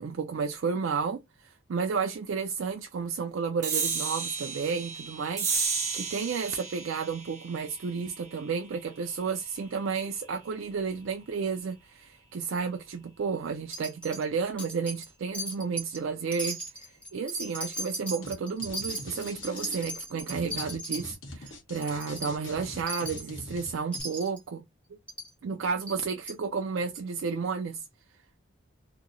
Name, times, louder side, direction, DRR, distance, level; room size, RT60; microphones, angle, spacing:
voice 1, 0.0-24.6 25.4-27.9, right 5 dB, 65° right, 0.4 m, -32 dB
sound 1, 3.6-10.5, right 5 dB, 35° right, 0.8 m, -34 dB
Wind chime, 13.7-14.2 14.6-15.1 15.3-16.0 16.3-21.0 21.5-21.6 21.8-22.3 22.9-23.3 23.9-24.4 25.1-25.3 25.9-26.0 26.3-26.4, right 1 dB, 5° left, 0.9 m, -37 dB
sound 2, 18.2-18.3 18.6-24.0, left 1 dB, 60° left, 1.0 m, -43 dB
3.0 x 2.6 x 2.6 m
head